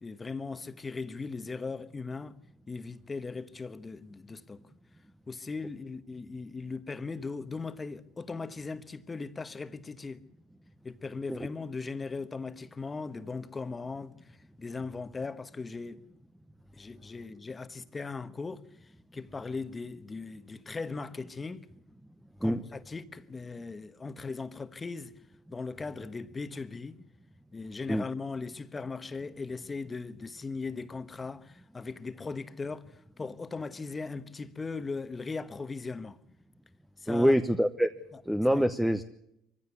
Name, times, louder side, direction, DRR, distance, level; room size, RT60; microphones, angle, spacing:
voice 1, 0.0-2.4 2.7-4.6 5.3-10.2 10.8-16.0 16.8-21.7 22.4-25.2 25.5-27.0 27.5-36.2 37.0-37.3 38.5-38.6, left 4 dB, 20° left, 1.3 m, -38 dB
voice 2, 37.1-37.9 38.2-39.0, equal, 5° right, 1.0 m, -25 dB
23.5 x 15.5 x 8.3 m
supercardioid pair, 95°, 0 cm